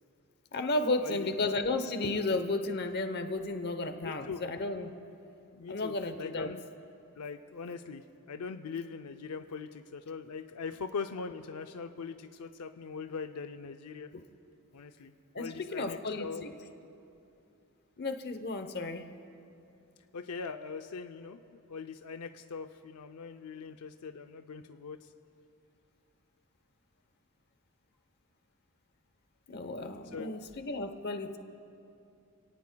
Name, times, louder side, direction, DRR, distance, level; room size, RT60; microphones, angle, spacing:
voice 1, 0.5-4.9 5.7-6.5 15.3-16.5 18.0-19.0 29.5-31.4, left 2 dB, 45° left, 8 dB, 0.9 m, -33 dB
voice 2, 4.0-4.4 5.5-6.6 7.2-14.1 14.7-16.4 20.1-25.1 30.1-30.5, left 5 dB, 85° left, 7 dB, 0.5 m, -41 dB
28.5 x 18.0 x 2.3 m, 2.7 s
head